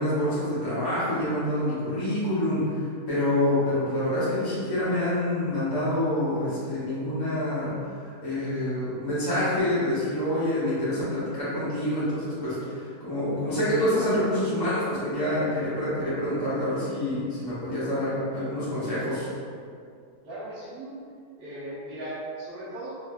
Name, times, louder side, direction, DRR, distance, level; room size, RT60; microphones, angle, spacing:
voice 1, 0.0-19.3, left 1 dB, 20° left, -12 dB, 0.7 m, -27 dB
voice 2, 20.2-21.0 21.4-23.0, right 1 dB, 50° right, -10 dB, 0.9 m, -37 dB
3.2 x 2.9 x 2.3 m, 2.3 s
omnidirectional pair, 1.6 m